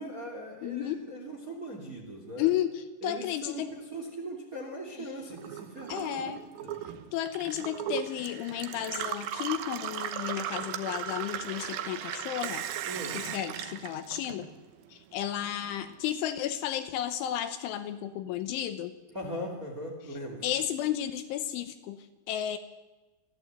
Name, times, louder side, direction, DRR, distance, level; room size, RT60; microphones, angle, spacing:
voice 1, 0.0-2.5 3.0-3.6 3.9-6.3 6.6-6.7 12.9-13.2 19.1-20.4, right 1 dB, 25° right, 2 dB, 2.2 m, -39 dB
voice 2, 0.6-1.0 2.4-3.7 5.0-5.2 5.9-6.4 7.1-12.6 13.1-14.5 14.9-19.0 20.4-22.6, left 11 dB, 75° left, 10 dB, 3.1 m, -33 dB
Gurgling / Water tap faucet / Sink (filling or washing), 5.3-14.8 15.1-16.0, right 10 dB, 80° right, 2.1 m, -37 dB
28.5 x 12.0 x 8.2 m, 1.2 s
omnidirectional pair, 5.9 m